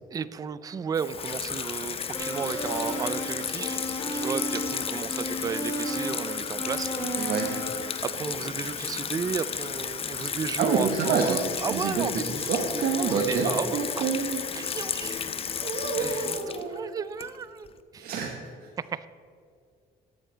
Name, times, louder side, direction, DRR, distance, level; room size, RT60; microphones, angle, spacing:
voice 1, 0.1-3.8 4.1-6.9 8.0-12.4 12.7-14.1 14.5-17.7 17.9-18.1 18.8-19.1, right 6 dB, 20° right, 15 dB, 0.3 m, -34 dB
Water tap faucet / Sink (filling or washing), 0.9-17.7, left 7 dB, 35° left, 0.6 m, -33 dB
sound 1, 2.1-8.0, right 1 dB, 15° left, 2.4 m, -34 dB
voice 2, 7.2-7.5 10.6-12.1 12.4-14.4 15.6-16.8 18.0-18.5, right 5 dB, 65° right, 1 dB, 1.1 m, -28 dB
13.0 x 7.9 x 4.5 m, 2.3 s
cardioid pair, 110°, 17 cm